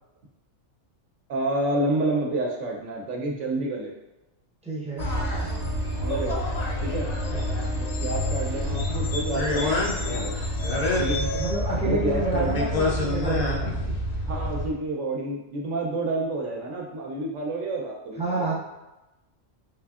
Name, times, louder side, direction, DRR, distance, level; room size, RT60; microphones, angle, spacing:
voice 1, 1.3-3.9 6.0-6.4 6.8-7.1 7.8-10.3 11.0-11.2 11.8-12.5 14.3-18.5, right 2 dB, 70° right, -1 dB, 0.8 m, -29 dB
voice 2, 4.6-5.1 7.3-7.6 11.2-13.8 18.2-18.5, right 2 dB, 10° right, -6 dB, 0.4 m, -29 dB
sound 1, 5.0-14.7, left 1 dB, 55° left, 0.4 m, -27 dB
3.3 x 3.3 x 2.3 m, 1.0 s
omnidirectional pair, 1.3 m